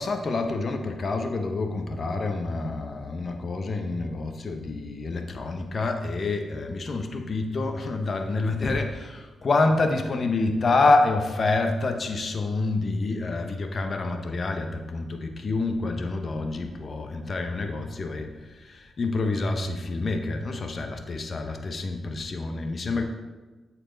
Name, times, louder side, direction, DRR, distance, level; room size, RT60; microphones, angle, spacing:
voice 1, 0.0-23.0, left 3 dB, 50° left, 5 dB, 1.0 m, -27 dB
12.5 x 4.4 x 4.0 m, 1.2 s
cardioid pair, 65°, 0 cm